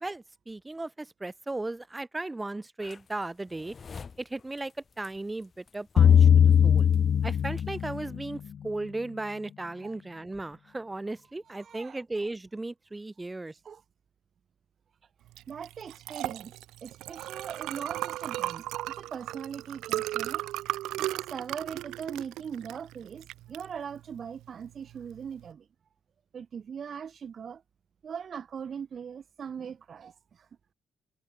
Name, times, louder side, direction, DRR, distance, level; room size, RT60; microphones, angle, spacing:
voice 1, 0.0-3.7 4.2-6.3 6.6-6.9 7.2-13.5, right 2 dB, 15° right, 1.8 m, -36 dB
sound 1, 2.8-8.0, left 5 dB, 40° left, 4.5 m, -51 dB
sound 2, 6.0-8.4, left 8 dB, 60° left, 0.4 m, -20 dB
voice 2, 11.5-12.0 13.6-13.8 15.5-16.5 16.8-20.4 21.0-25.6 26.3-27.6 28.0-30.5, right 7 dB, 50° right, 1.2 m, -40 dB
Liquid, 15.3-25.5, right 15 dB, 90° right, 1.2 m, -36 dB
cardioid pair, 90°, 0 cm